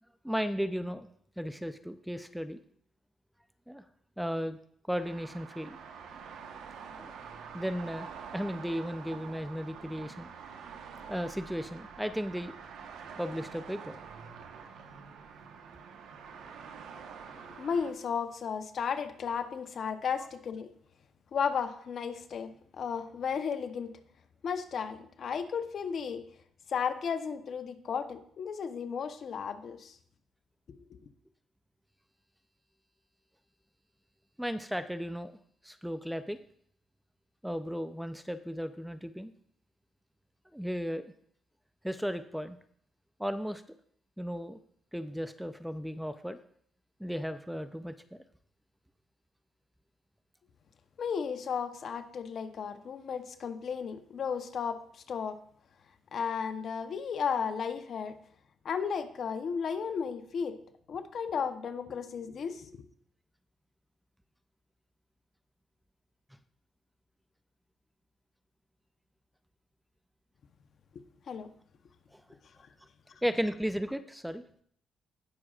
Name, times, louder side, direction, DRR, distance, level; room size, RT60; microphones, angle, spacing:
voice 1, 0.2-1.1 1.4-2.6 3.7-3.9 4.2-4.6 4.9-5.8 7.0-7.1 7.5-10.3 11.1-12.5 13.2-14.0 20.2-20.3 34.4-35.3 35.6-36.4 37.4-39.3 40.5-41.1 41.8-42.6 43.2-43.6 44.2-44.6 44.9-46.4 47.0-48.2 72.1-72.4 73.2-74.4, equal, ahead, 11 dB, 0.5 m, -35 dB
sound 1, 5.0-17.9, right 6 dB, 85° right, 1.1 m, -47 dB
voice 2, 17.6-20.7 21.3-22.5 22.8-23.9 24.4-26.2 26.7-30.0 30.7-30.8 51.0-54.8 55.1-55.4 56.1-58.1 58.6-60.6 60.9-62.8 71.3-71.5, left 6 dB, 55° left, 9 dB, 0.8 m, -34 dB
17.5 x 6.2 x 2.4 m, 0.63 s
cardioid pair, 90°, 0 cm